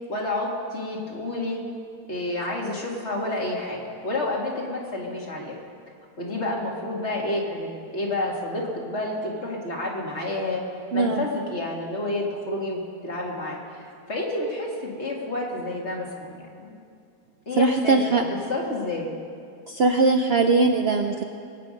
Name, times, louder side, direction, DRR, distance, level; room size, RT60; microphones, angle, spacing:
voice 1, 0.1-1.6 2.1-5.6 6.2-10.6 10.9-16.8 17.5-19.1, left 2 dB, 45° left, -2 dB, 2.3 m, -29 dB
voice 2, 10.9-11.2 17.6-18.2 19.7-21.2, right 3 dB, 60° right, 4 dB, 0.7 m, -20 dB
21.5 x 9.3 x 5.2 m, 2.3 s
omnidirectional pair, 1.6 m